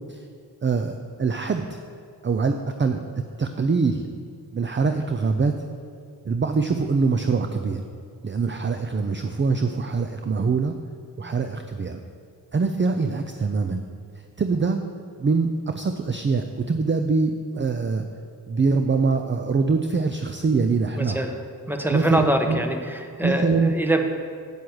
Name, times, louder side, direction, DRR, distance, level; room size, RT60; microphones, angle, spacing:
voice 1, 0.6-1.7 2.2-3.0 3.4-4.1 4.5-5.5 6.2-7.8 8.2-10.7 11.2-12.0 12.5-13.8 14.4-14.8 15.2-18.1 18.5-21.2 21.9-22.6 23.2-23.7, right 4 dB, 30° right, 6 dB, 0.6 m, -23 dB
voice 2, 21.0-21.4 21.7-24.0, right 1 dB, 5° right, 5 dB, 1.1 m, -24 dB
7.2 x 6.3 x 7.8 m, 2.2 s
cardioid pair, 50°, 42 cm